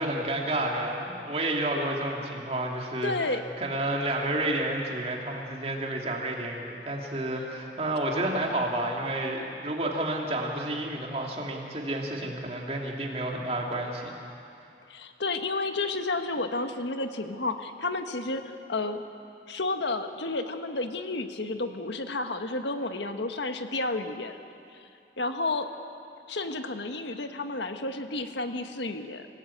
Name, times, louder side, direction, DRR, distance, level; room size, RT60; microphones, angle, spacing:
voice 1, 0.0-14.1, right 1 dB, 35° right, 0 dB, 2.9 m, -30 dB
voice 2, 3.0-3.4 14.9-19.0 19.5-24.4 25.2-25.7 26.3-29.3, left 2 dB, 80° left, 7 dB, 1.5 m, -31 dB
26.5 x 17.0 x 8.6 m, 2.6 s
head